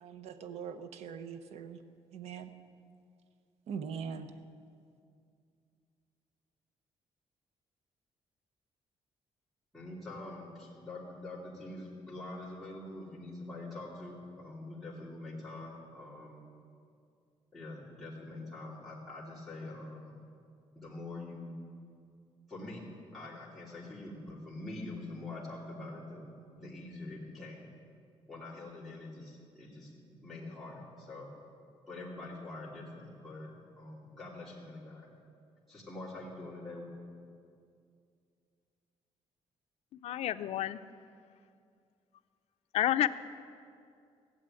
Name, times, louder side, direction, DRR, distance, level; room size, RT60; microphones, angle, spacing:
voice 1, 0.0-1.8 2.1-2.5 3.7-4.3, right 6 dB, 80° right, 10 dB, 0.9 m, -41 dB
voice 2, 9.7-16.4 17.5-20.2 20.7-21.5 22.5-22.8 23.1-27.7 28.3-29.9 30.2-31.3 31.9-35.1 35.7-36.9, left 2 dB, ahead, -8 dB, 3.0 m, -45 dB
voice 3, 40.0-40.8 42.7-43.1, left 12 dB, 75° left, 12 dB, 0.5 m, -29 dB
15.5 x 7.7 x 9.0 m, 2.4 s
cardioid pair, 145°, 11 cm